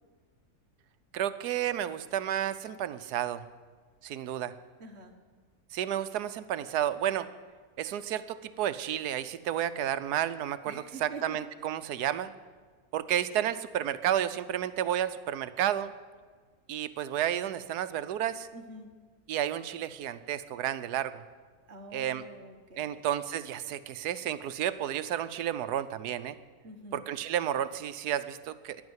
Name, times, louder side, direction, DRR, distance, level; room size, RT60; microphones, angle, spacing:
voice 1, 1.1-3.4 4.0-4.5 5.7-7.3 7.8-12.3 12.9-15.9 16.7-18.5 19.3-21.2 21.9-22.2 22.8-26.4 26.9-28.8, right 11 dB, 90° right, 13 dB, 1.3 m, -31 dB
voice 2, 4.8-5.2 10.6-11.4 11.6-11.8 18.5-18.9 21.7-23.0 26.6-27.0, right 2 dB, 45° right, 4 dB, 1.7 m, -46 dB
15.0 x 10.5 x 8.0 m, 1.5 s
omnidirectional pair, 1.7 m